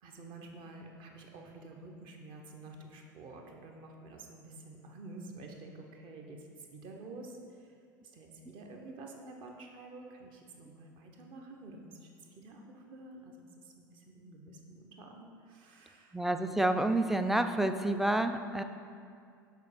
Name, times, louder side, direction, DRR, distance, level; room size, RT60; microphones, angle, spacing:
voice 1, 0.0-7.7 8.0-16.2, right 2 dB, 45° right, 2 dB, 1.0 m, -49 dB
voice 2, 16.1-18.6, right 1 dB, ahead, 8 dB, 0.4 m, -29 dB
6.6 x 4.5 x 5.1 m, 2.3 s
figure-of-eight pair, 75°, 11 cm